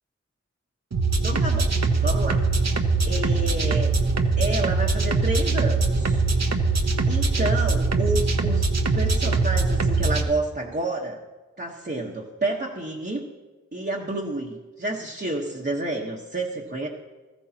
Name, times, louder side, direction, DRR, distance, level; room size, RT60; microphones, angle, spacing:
sound 1, 0.9-10.2, right 3 dB, 60° right, 1.0 m, -22 dB
voice 1, 1.2-1.7 2.0-2.4 3.0-3.9 4.4-6.2 7.0-8.7 8.9-11.2 11.6-13.2 13.7-16.9, right 2 dB, 35° right, -2 dB, 1.2 m, -29 dB
19.0 x 14.5 x 2.9 m, 1.3 s
wide cardioid pair, 60°, 30 cm